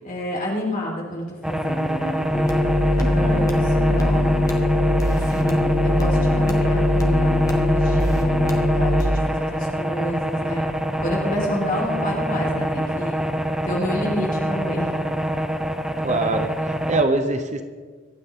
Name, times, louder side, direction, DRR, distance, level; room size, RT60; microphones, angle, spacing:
voice 1, 0.0-2.2 3.0-4.6 5.0-10.6 11.0-13.2 13.6-14.9, left 1 dB, 40° left, -2 dB, 4.0 m, -29 dB
sound 1, 1.4-17.0, right 1 dB, 5° right, 0.7 m, -26 dB
sound 2, 2.3-9.1, left 1 dB, 15° left, 1.5 m, -20 dB
voice 2, 3.0-3.5 16.0-17.6, right 2 dB, 35° right, 7 dB, 0.8 m, -24 dB
25.0 x 9.1 x 3.8 m, 1.5 s
head